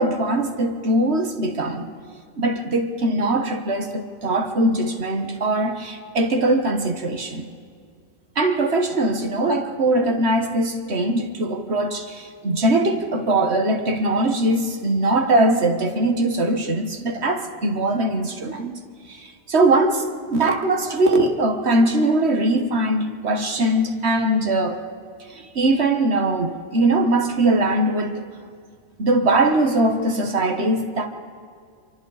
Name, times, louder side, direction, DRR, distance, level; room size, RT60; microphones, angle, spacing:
voice 1, 0.0-1.9 2.4-7.5 8.3-18.8 19.1-24.8 25.3-28.2 29.0-31.1, right 2 dB, 65° right, 6 dB, 1.6 m, -21 dB
27.5 x 24.0 x 4.1 m, 2.2 s
omnidirectional pair, 1.2 m